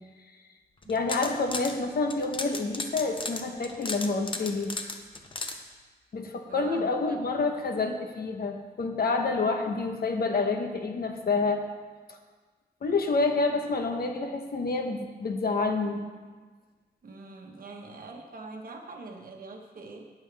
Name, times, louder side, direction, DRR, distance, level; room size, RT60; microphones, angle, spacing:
sound 1, 0.8-1.7 2.1-5.6, left 3 dB, 30° left, 0.8 m, -35 dB
voice 1, 0.9-4.7 6.1-11.6 12.1-12.2 12.8-16.0, left 3 dB, 65° left, 4 dB, 1.1 m, -28 dB
voice 2, 6.5-7.2 17.0-20.0, right 3 dB, 55° right, 2 dB, 1.3 m, -43 dB
19.0 x 7.2 x 3.4 m, 1.4 s
wide cardioid pair, 175°, 17 cm